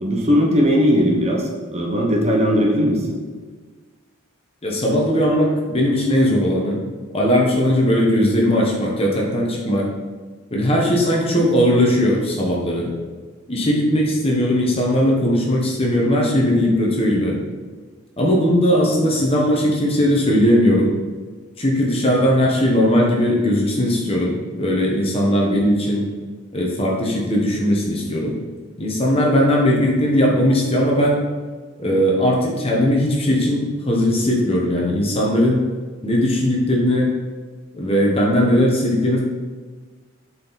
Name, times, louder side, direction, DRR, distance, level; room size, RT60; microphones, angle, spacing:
voice 1, 0.0-3.2, equal, 30° right, -1 dB, 0.9 m, -18 dB
voice 2, 4.6-6.8 7.1-9.9 10.5-12.9 13.5-17.4 18.2-20.9 21.6-26.1 26.5-28.4 28.8-31.2 31.8-35.6 36.0-37.1 37.7-39.2, equal, 25° left, -2 dB, 1.1 m, -18 dB
7.4 x 4.4 x 4.0 m, 1.4 s
head